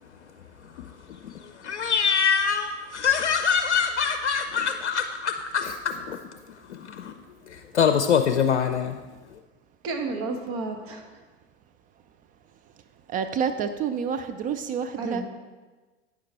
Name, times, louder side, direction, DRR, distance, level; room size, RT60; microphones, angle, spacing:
voice 1, 0.7-6.2 6.7-7.1 7.5-9.0, left 6 dB, 85° left, 7 dB, 0.5 m, -25 dB
voice 2, 9.8-11.0 15.0-15.2, right 3 dB, 40° right, 4 dB, 1.3 m, -31 dB
voice 3, 13.1-15.2, right 7 dB, 25° right, 8 dB, 0.4 m, -28 dB
9.4 x 6.5 x 4.2 m, 1.3 s
hypercardioid pair, 95°, 34 cm